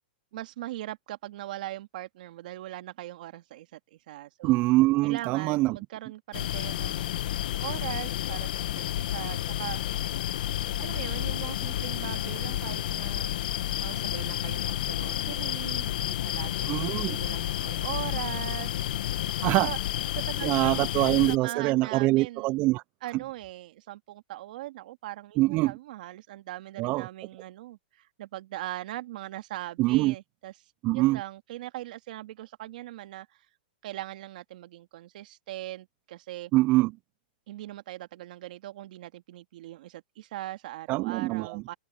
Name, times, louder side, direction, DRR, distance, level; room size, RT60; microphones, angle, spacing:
voice 1, 0.3-4.7 5.0-7.1 7.6-8.7 9.0-9.8 10.8-13.3 13.8-18.7 19.6-19.8 20.2-22.5 23.0-30.5 30.9-33.4 33.8-36.5 37.5-41.7, right 15 dB, 60° right, 2.0 m, -40 dB
voice 2, 4.4-5.8 16.7-17.2 19.4-19.7 20.4-22.8 25.4-25.7 26.8-27.1 29.8-30.1 30.8-31.2 36.5-36.9 40.9-41.6, right 19 dB, 35° right, 0.4 m, -24 dB
sound 1, 6.3-21.4, left 12 dB, 70° left, 1.0 m, -31 dB
hypercardioid pair, 140°, 5 cm